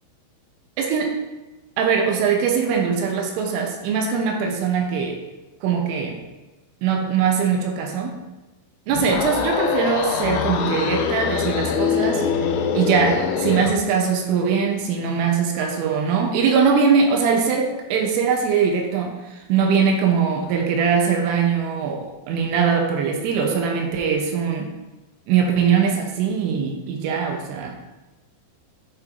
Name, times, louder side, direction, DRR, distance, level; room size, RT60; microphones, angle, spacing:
voice 1, 0.8-1.1 1.8-5.2 5.6-6.2 6.8-8.2 8.9-12.2 12.7-19.2 19.5-24.7 25.3-27.8, right 6 dB, 85° right, 2 dB, 3.2 m, -21 dB
sound 1, 8.9-13.8, left 7 dB, 85° left, 2.8 m, -23 dB
11.5 x 4.5 x 2.6 m, 1.1 s
omnidirectional pair, 5.8 m